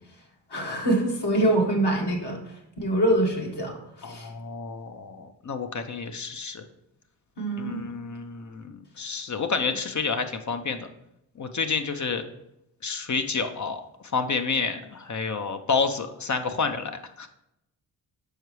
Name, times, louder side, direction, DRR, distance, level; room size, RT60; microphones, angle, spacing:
voice 1, 0.5-4.3 7.4-7.8, right 1 dB, 60° left, -1 dB, 1.7 m, -25 dB
voice 2, 4.0-6.6 7.6-10.9 11.4-12.2 12.8-13.8 14.1-16.9 17.2-17.3, left 5 dB, 40° left, 7 dB, 0.7 m, -29 dB
6.4 x 4.5 x 3.2 m, 0.83 s
supercardioid pair, 40°, 46 cm